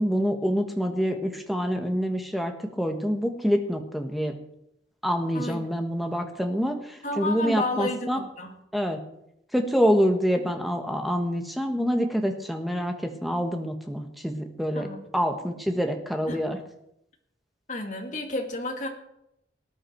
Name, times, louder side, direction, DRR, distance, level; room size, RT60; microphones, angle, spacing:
voice 1, 0.0-4.3 5.0-8.2 8.7-9.0 9.5-14.9 15.1-16.6, equal, ahead, 4 dB, 1.4 m, -26 dB
voice 2, 5.3-5.7 7.0-8.5 14.7-15.0 16.3-16.4 17.7-18.9, left 2 dB, 40° left, 2 dB, 2.3 m, -31 dB
19.0 x 10.0 x 4.6 m, 0.80 s
head